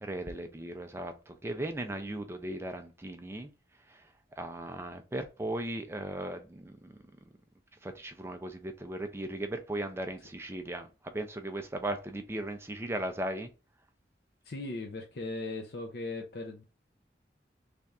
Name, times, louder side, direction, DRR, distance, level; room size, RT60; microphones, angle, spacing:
voice 1, 0.0-3.5 3.9-4.0 4.4-6.9 7.8-13.5, right 1 dB, 15° right, 0.4 m, -37 dB
voice 2, 14.4-16.6, left 2 dB, 60° left, 0.5 m, -38 dB
3.3 x 2.4 x 4.1 m
head